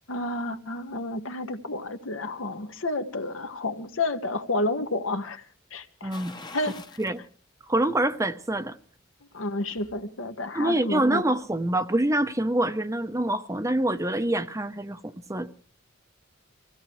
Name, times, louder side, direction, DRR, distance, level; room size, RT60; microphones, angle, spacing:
voice 1, 0.1-5.4 5.7-6.2 6.5-6.7 9.3-11.2, left 2 dB, 80° left, 1.6 m, -30 dB
voice 2, 6.0-6.3 7.0-7.2 7.7-8.8 10.5-15.5, right 1 dB, 15° right, 0.8 m, -26 dB
sound 1, 6.1-7.2 7.6-7.7 9.2-10.0 10.3-10.4, left 3 dB, 20° left, 1.0 m, -45 dB
26.0 x 16.5 x 3.2 m
head